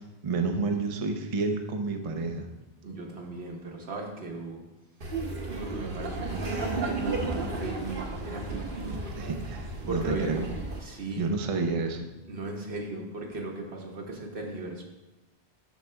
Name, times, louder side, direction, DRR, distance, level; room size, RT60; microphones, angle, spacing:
voice 1, 0.2-2.5 9.2-10.5 11.2-12.1, right 3 dB, 40° right, 4 dB, 0.6 m, -30 dB
voice 2, 2.8-4.6 5.5-9.0 9.9-10.3 10.8-11.3 12.3-14.8, right 2 dB, 75° right, 0 dB, 1.5 m, -37 dB
Laughter, 5.0-10.8, right 3 dB, 55° right, 1.1 m, -33 dB
12.5 x 4.1 x 3.4 m, 1.0 s
omnidirectional pair, 1.1 m